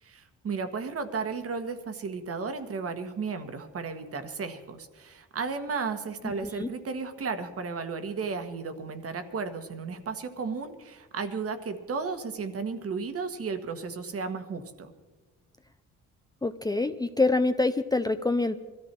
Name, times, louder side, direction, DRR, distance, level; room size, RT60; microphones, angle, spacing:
voice 1, 0.0-14.9, right 5 dB, 50° right, 9 dB, 1.6 m, -34 dB
voice 2, 16.4-18.6, left 3 dB, 15° left, 8 dB, 0.6 m, -26 dB
21.5 x 14.0 x 4.6 m, 1.3 s
cardioid pair, 90°, 30 cm